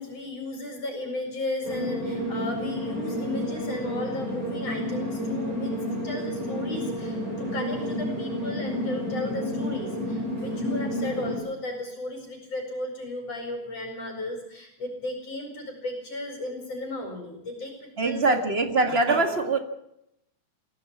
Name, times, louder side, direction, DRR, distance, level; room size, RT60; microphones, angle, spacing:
voice 1, 0.0-18.4, left 2 dB, 50° left, 4 dB, 5.5 m, -35 dB
sound 1, 1.6-11.4, equal, 45° right, 8.6 m, -30 dB
voice 2, 18.0-19.6, right 3 dB, 25° right, 7 dB, 1.6 m, -23 dB
23.0 x 16.0 x 7.3 m, 0.79 s
omnidirectional pair, 3.6 m